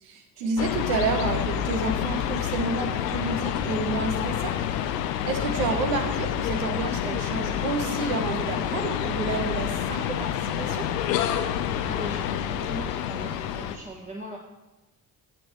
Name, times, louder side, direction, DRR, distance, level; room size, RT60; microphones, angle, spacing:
voice 1, 0.0-10.8, right 4 dB, 70° right, 4 dB, 1.4 m, -30 dB
sound 1, 0.6-13.8, left 10 dB, 75° left, 0.7 m, -28 dB
voice 2, 11.8-14.4, equal, 15° right, -1 dB, 1.4 m, -40 dB
15.0 x 7.6 x 3.2 m, 1.0 s
figure-of-eight pair, 45°, 50 cm